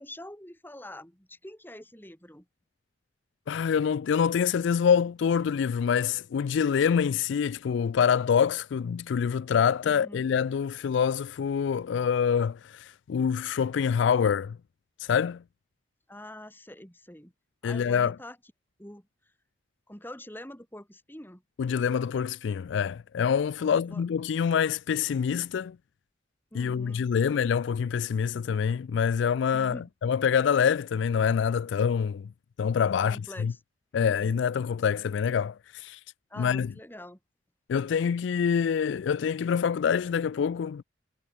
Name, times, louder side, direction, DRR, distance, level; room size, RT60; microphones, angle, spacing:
voice 1, 0.0-2.5 9.8-10.3 16.1-17.3 17.6-18.4 18.8-19.1 19.9-21.4 23.6-24.0 26.5-27.3 29.5-29.9 32.9-33.6 34.2-34.3 36.3-37.2, left 1 dB, 10° left, 5.5 m, -45 dB
voice 2, 3.5-14.6 15.0-15.4 17.6-18.2 21.6-25.8 26.5-32.3 32.6-33.5 33.9-36.0 36.4-36.7 37.7-40.8, left 7 dB, 70° left, 0.3 m, -26 dB
head